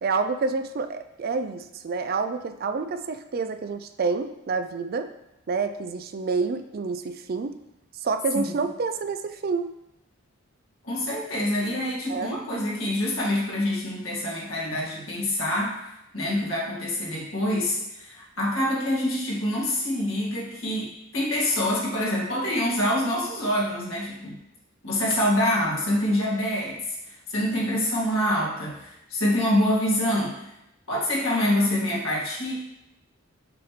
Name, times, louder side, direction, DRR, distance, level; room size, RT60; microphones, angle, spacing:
voice 1, 0.0-5.1 5.5-7.6 7.9-9.7 12.1-12.4, right 4 dB, 45° right, 9 dB, 0.4 m, -28 dB
voice 2, 10.8-15.8 16.1-24.4 24.8-26.8 27.0-30.5 30.9-32.6, left 1 dB, 75° left, -5 dB, 2.1 m, -26 dB
6.3 x 6.0 x 3.2 m, 0.87 s
head